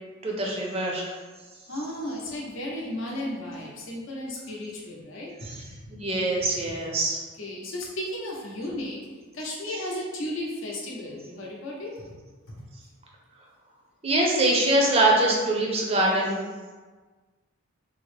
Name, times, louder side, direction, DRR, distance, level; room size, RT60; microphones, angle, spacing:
voice 1, 0.2-1.1 5.4-5.6 5.9-7.2 14.0-16.5, right 1 dB, 30° right, -2 dB, 0.5 m, -23 dB
voice 2, 1.7-5.6 6.7-6.8 7.4-9.1 9.3-12.2 12.5-12.7, left 1 dB, 65° left, -2 dB, 0.7 m, -34 dB
3.4 x 2.0 x 3.2 m, 1.4 s
head